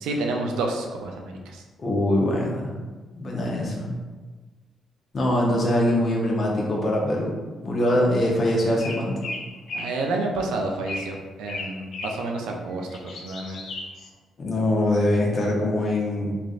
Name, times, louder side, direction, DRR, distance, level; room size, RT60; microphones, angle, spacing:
voice 1, 0.0-1.6 9.7-12.9 13.2-13.6, right 2 dB, 85° right, 2 dB, 0.4 m, -29 dB
voice 2, 1.8-2.8 3.2-3.9 5.1-7.3 7.6-9.2 14.4-16.3, left 1 dB, 50° left, -2 dB, 0.8 m, -23 dB
sound 1, 8.8-10.0 10.8-11.2 11.5-12.2 12.7-14.1, left 2 dB, 65° left, 0.4 m, -35 dB
3.2 x 2.5 x 2.4 m, 1.3 s
supercardioid pair, 70°, 0 cm